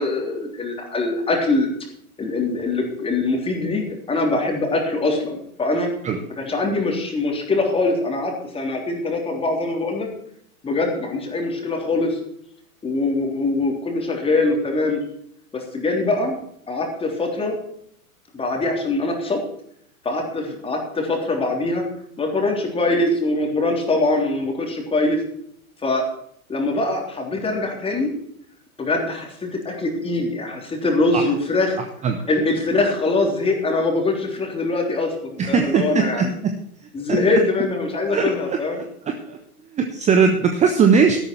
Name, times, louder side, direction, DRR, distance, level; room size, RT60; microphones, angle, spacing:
voice 1, 0.0-1.7 2.2-5.9 6.4-10.1 10.6-12.2 12.8-15.0 15.5-16.4 16.7-17.5 18.3-19.4 20.0-21.8 22.2-25.2 25.8-26.0 26.5-28.1 28.8-31.8 32.3-35.1 35.5-36.3 36.9-38.8, left 2 dB, 15° left, 2 dB, 3.4 m, -23 dB
voice 2, 35.4-36.5 36.8-37.2 38.1-38.6 39.1-39.4 39.7-41.2, right 5 dB, 15° right, 5 dB, 1.1 m, -19 dB
13.0 x 11.5 x 4.6 m, 0.71 s
figure-of-eight pair, 105°, 43 cm